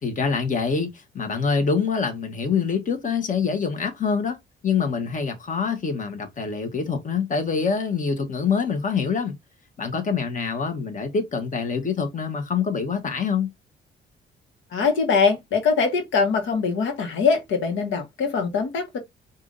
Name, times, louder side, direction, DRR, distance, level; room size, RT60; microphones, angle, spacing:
voice 1, 0.0-4.4 4.6-9.3 9.8-13.5, left 5 dB, 40° left, 1.5 m, -25 dB
voice 2, 14.7-19.0, left 5 dB, 75° left, 1.4 m, -22 dB
4.8 x 2.7 x 4.0 m
cardioid pair, 90°, 20 cm